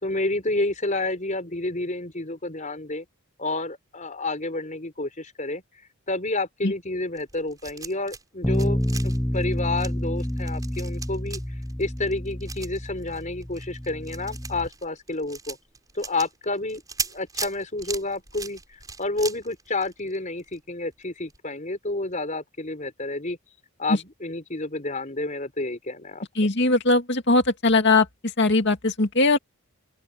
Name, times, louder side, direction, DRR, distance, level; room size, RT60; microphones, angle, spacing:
voice 1, 0.0-3.1 3.4-5.6 6.1-11.4 11.8-15.6 15.9-16.8 17.1-23.4 23.8-26.3, left 2 dB, 35° left, 4.6 m, -30 dB
sound 1, 7.1-8.2 8.5-20.6 20.9-21.0 21.3-21.4, right 5 dB, 15° right, 5.1 m, -38 dB
Bass guitar, 8.4-14.7, equal, 5° left, 0.7 m, -29 dB
voice 2, 26.4-28.1 28.4-29.4, left 2 dB, 50° left, 2.4 m, -20 dB
open air
head